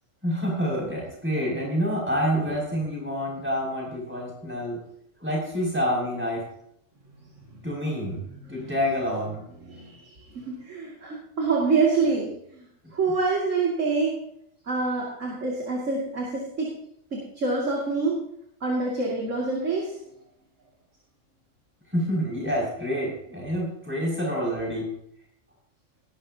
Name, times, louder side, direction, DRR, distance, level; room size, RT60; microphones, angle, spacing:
voice 1, 0.2-4.8 5.2-6.4 7.6-8.2 8.5-9.4 21.9-24.9, equal, 10° right, -4 dB, 6.5 m, -27 dB
voice 2, 8.3-8.7 9.6-12.7 12.9-14.1 14.7-16.7 17.1-18.2 18.6-20.0, right 4 dB, 75° right, -3 dB, 2.9 m, -26 dB
19.5 x 12.0 x 2.9 m, 0.74 s
omnidirectional pair, 1.3 m